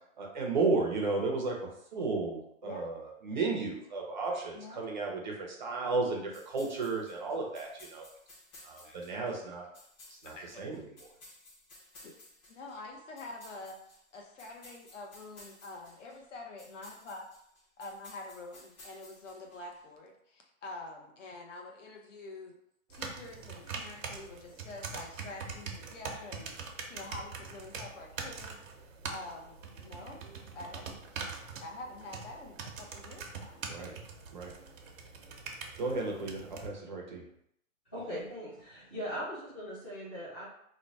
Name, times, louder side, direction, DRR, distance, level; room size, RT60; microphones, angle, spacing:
voice 1, 0.2-8.1 8.6-9.7 10.1-11.1 33.7-33.9 34.3-34.5 35.8-37.3, right 3 dB, 35° right, -1 dB, 0.6 m, -34 dB
sound 1, 6.3-19.8, left 2 dB, 30° left, 1.0 m, -56 dB
voice 2, 12.5-17.3 17.8-22.6 22.9-26.5 26.9-28.6 29.1-30.2 30.5-31.3 31.6-33.6, left 2 dB, 60° left, 1 dB, 0.9 m, -46 dB
sound 2, 22.9-36.7, right 5 dB, 70° right, 0.8 m, -43 dB
voice 3, 37.9-40.4, equal, 10° left, -16 dB, 0.4 m, -39 dB
3.1 x 2.1 x 4.0 m, 0.71 s
hypercardioid pair, 165°, 41 cm